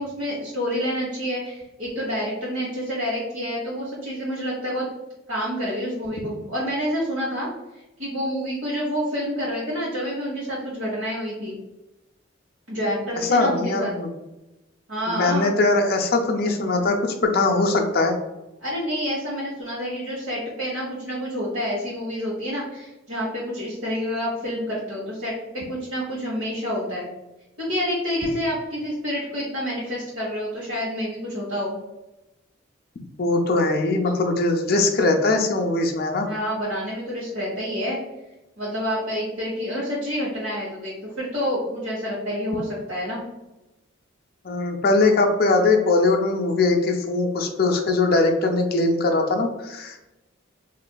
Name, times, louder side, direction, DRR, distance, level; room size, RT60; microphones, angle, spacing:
voice 1, 0.0-4.8 5.3-7.5 7.7-11.6 12.7-13.9 14.9-15.5 18.6-25.4 25.7-27.1 27.6-31.8 36.2-38.0 38.6-43.2, equal, 80° right, -8 dB, 1.0 m, -28 dB
voice 2, 13.3-14.1 15.1-18.2 33.2-36.3 44.4-50.0, left 3 dB, 45° left, 3 dB, 0.4 m, -21 dB
3.9 x 2.4 x 2.2 m, 1.0 s
head